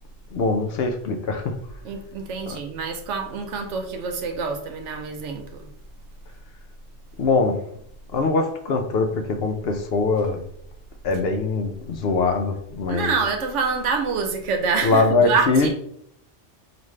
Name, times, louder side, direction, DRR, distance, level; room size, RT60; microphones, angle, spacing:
voice 1, 0.3-1.5 2.5-2.6 7.2-7.6 8.1-10.4 11.0-13.1 14.8-15.7, left 3 dB, 65° left, 5 dB, 0.7 m, -22 dB
voice 2, 1.8-5.7 12.9-15.7, right 5 dB, 80° right, 4 dB, 1.0 m, -26 dB
5.0 x 2.5 x 3.1 m, 0.70 s
omnidirectional pair, 1.2 m